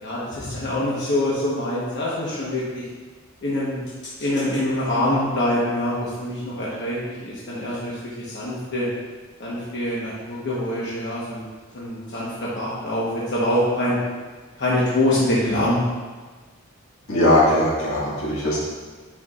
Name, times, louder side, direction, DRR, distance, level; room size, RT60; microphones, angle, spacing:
voice 1, 0.0-2.8 3.4-3.8 4.2-7.0 7.2-8.9 9.4-11.4 11.7-14.0 14.6-15.8, left 1 dB, 55° left, -7 dB, 1.1 m, -24 dB
voice 2, 17.1-18.6, left 1 dB, 80° left, -6 dB, 1.8 m, -19 dB
9.3 x 4.7 x 2.4 m, 1.4 s
head